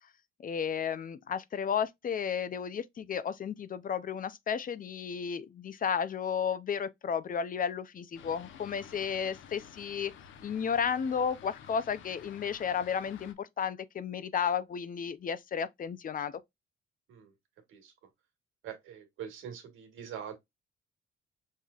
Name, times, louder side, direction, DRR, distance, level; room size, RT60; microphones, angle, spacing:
voice 1, 0.4-10.1 10.4-16.4, left 7 dB, 45° left, 0.6 m, -33 dB
Fixed-wing aircraft airplane, 8.1-13.3, left 8 dB, 80° left, 0.8 m, -52 dB
voice 2, 18.6-20.4, right 8 dB, 85° right, 1.6 m, -43 dB
5.6 x 3.2 x 2.4 m
cardioid pair, 90°, 20 cm